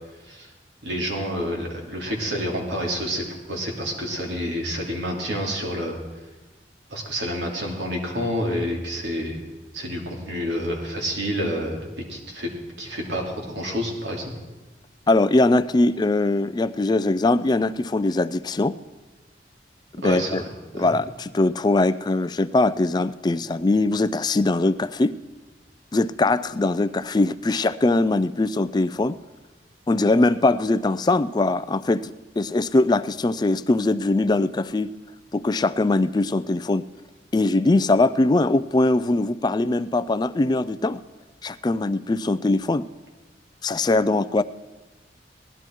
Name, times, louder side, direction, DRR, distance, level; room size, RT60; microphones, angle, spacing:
voice 1, 0.8-6.0 6.9-9.4 9.7-12.5 12.8-14.3 20.0-20.5 20.7-20.9, equal, 85° right, 0 dB, 2.8 m, -28 dB
voice 2, 15.1-18.8 20.0-20.4 20.7-25.2 25.9-29.2 29.9-34.9 35.3-36.8 37.3-41.0 41.4-42.9 43.6-44.4, left 2 dB, 25° left, 14 dB, 0.4 m, -21 dB
17.5 x 11.5 x 4.6 m, 1.2 s
head